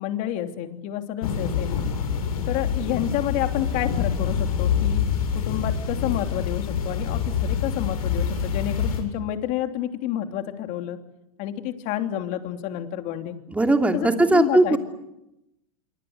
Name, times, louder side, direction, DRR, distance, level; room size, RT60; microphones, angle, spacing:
voice 1, 0.0-1.7 2.5-5.0 5.3-11.0 11.4-13.4 13.9-14.8, left 12 dB, 45° left, 6 dB, 3.1 m, -29 dB
sound 1, 1.2-9.0, left 7 dB, 80° left, 8.0 m, -26 dB
voice 2, 13.5-14.8, right 2 dB, 5° right, 4 dB, 2.9 m, -19 dB
26.5 x 24.0 x 8.0 m, 0.87 s
hypercardioid pair, 130°, 19 cm